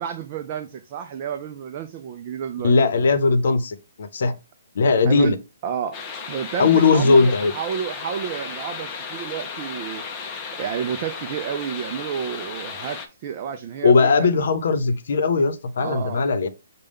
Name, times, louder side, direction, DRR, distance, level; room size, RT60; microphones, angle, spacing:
voice 1, 0.0-2.7 5.0-5.3 5.6-6.0 6.3-10.0 10.6-14.3 15.8-16.3, right 8 dB, 30° right, 0.4 m, -30 dB
voice 2, 2.6-4.4 4.7-5.4 6.6-7.5 13.8-16.5, left 4 dB, 55° left, 0.8 m, -18 dB
sound 1, 5.9-13.1, left 5 dB, 15° left, 0.6 m, -34 dB
6.4 x 2.2 x 3.5 m
hypercardioid pair, 170°, 0 cm